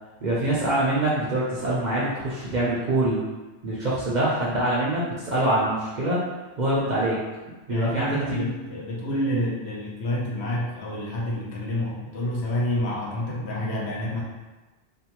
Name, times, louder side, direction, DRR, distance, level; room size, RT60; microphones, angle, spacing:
voice 1, 0.2-3.2 3.6-6.2 6.6-7.2 7.7-8.5 9.3-9.5, right 1 dB, 55° right, -7 dB, 0.5 m, -24 dB
voice 2, 7.7-14.2, left 1 dB, 70° left, -4 dB, 0.9 m, -28 dB
2.6 x 2.1 x 2.9 m, 1.2 s
omnidirectional pair, 1.2 m